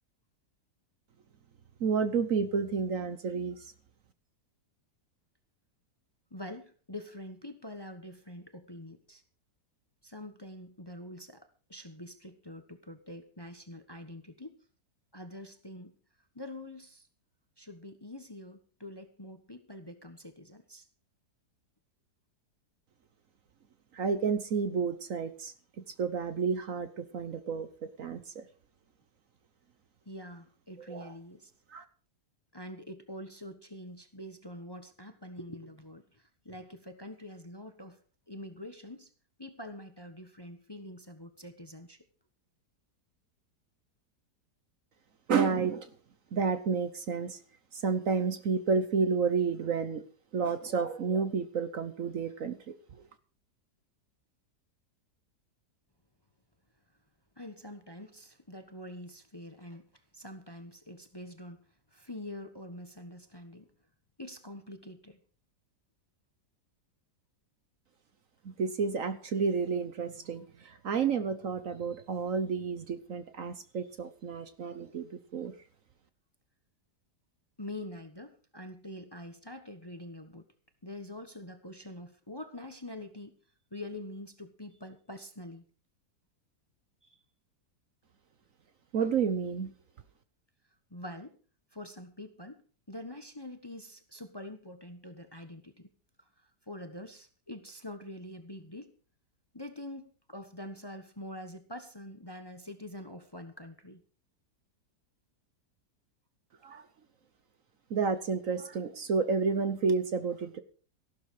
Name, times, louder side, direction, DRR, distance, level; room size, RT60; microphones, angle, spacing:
voice 1, 1.8-3.7 23.9-25.5 26.0-28.4 30.9-31.1 31.7-31.8 45.3-45.9 46.3-47.4 47.7-50.0 50.3-52.6 68.4-75.5 88.9-89.7 106.6-106.8 107.9-110.6, right 5 dB, 55° right, 11 dB, 1.2 m, -30 dB
voice 2, 6.3-9.2 10.0-14.6 15.1-15.9 16.3-17.1 17.6-20.9 30.0-31.5 32.5-38.0 38.3-39.1 39.4-42.0 57.4-63.7 64.2-65.2 77.6-80.4 80.8-83.3 83.7-85.6 87.0-87.2 90.9-91.4 91.7-92.6 92.9-95.9 96.2-96.3 96.7-98.9 99.5-104.0, left 1 dB, 15° left, 8 dB, 1.1 m, -45 dB
14.5 x 12.5 x 4.9 m, 0.39 s
omnidirectional pair, 1.8 m